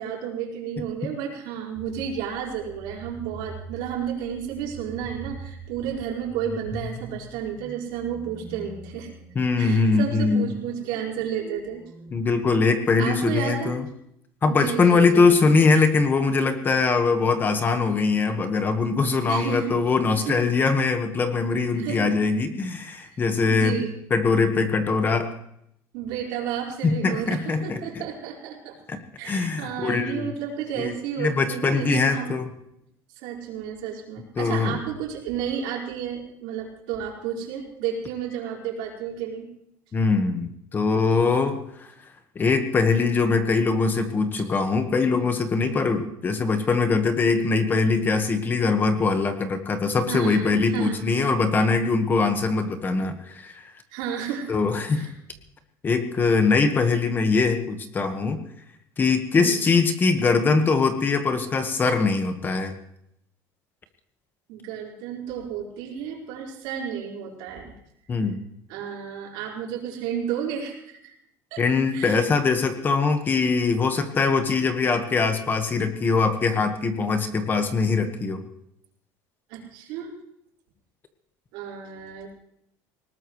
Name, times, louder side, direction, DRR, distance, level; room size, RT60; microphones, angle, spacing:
voice 1, 0.0-9.1 9.6-11.8 13.0-13.8 14.5-15.3 19.3-19.8 20.2-20.4 21.8-22.2 23.0-23.2 23.5-23.9 25.9-28.8 29.2-32.3 33.2-39.5 50.1-51.1 53.9-54.6 54.9-55.1 59.3-59.7 64.5-67.7 68.7-71.1 71.5-71.6 71.9-72.2 79.5-80.1 81.5-82.3, right 8 dB, 85° right, -2 dB, 4.8 m, -32 dB
sound 1, 1.8-12.1, right 2 dB, 5° right, 6.0 m, -42 dB
voice 2, 9.3-10.5 12.1-13.8 14.4-23.8 24.1-25.3 26.8-27.8 28.9-29.0 29.3-30.3 30.8-30.9 31.2-32.5 34.4-34.8 39.9-41.9 42.3-53.7 54.5-55.1 55.8-58.4 59.0-62.7 68.1-68.4 71.6-78.4, left 4 dB, 25° left, 7 dB, 1.4 m, -22 dB
19.5 x 19.5 x 3.2 m, 0.75 s
cardioid pair, 150°, 8 cm